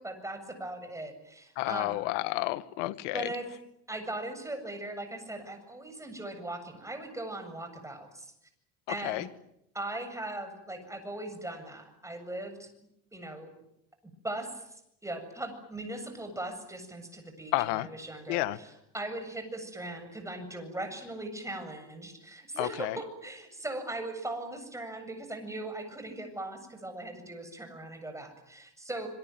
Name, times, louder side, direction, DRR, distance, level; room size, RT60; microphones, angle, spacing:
voice 1, 0.0-2.0 3.1-3.5 3.9-8.3 8.9-9.3 9.7-12.7 13.1-13.5 14.0-14.6 15.0-29.1, right 1 dB, 10° right, 7 dB, 7.6 m, -39 dB
voice 2, 1.6-3.3 9.0-9.3 17.5-17.9 18.3-18.6 22.6-23.0, left 18 dB, 90° left, 14 dB, 1.6 m, -30 dB
27.0 x 23.0 x 9.3 m, 0.81 s
supercardioid pair, 110°, 37 cm